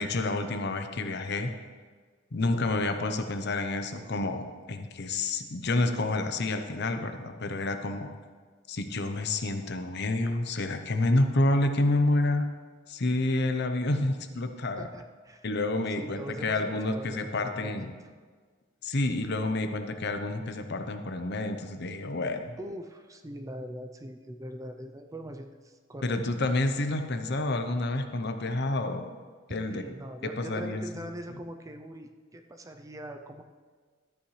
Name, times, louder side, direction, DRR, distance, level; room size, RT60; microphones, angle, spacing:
voice 1, 0.0-1.5 2.3-8.1 8.7-12.5 12.9-14.9 15.4-17.9 18.8-22.6 26.0-29.2 29.5-29.8 30.2-31.1, left 2 dB, 55° left, 7 dB, 0.7 m, -29 dB
voice 2, 14.8-15.5 15.9-17.9 22.6-26.2 29.7-33.4, equal, 15° right, 6 dB, 0.5 m, -42 dB
13.0 x 8.6 x 3.2 m, 1.6 s
head